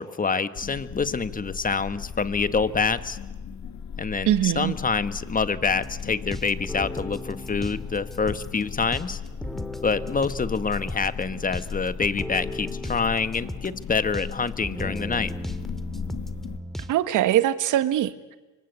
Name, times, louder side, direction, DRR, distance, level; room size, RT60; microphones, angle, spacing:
voice 1, 0.0-3.2 4.0-9.2 9.8-15.3, left 5 dB, 30° left, 12 dB, 1.4 m, -26 dB
sound 1, 0.5-16.6, left 6 dB, 65° left, 1.9 m, -37 dB
voice 2, 4.3-4.7 16.9-18.4, right 12 dB, 85° right, 12 dB, 1.5 m, -22 dB
sound 2, 5.7-16.9, equal, ahead, 2.0 m, -37 dB
26.5 x 24.5 x 8.2 m, 1.1 s
cardioid pair, 90°, 30 cm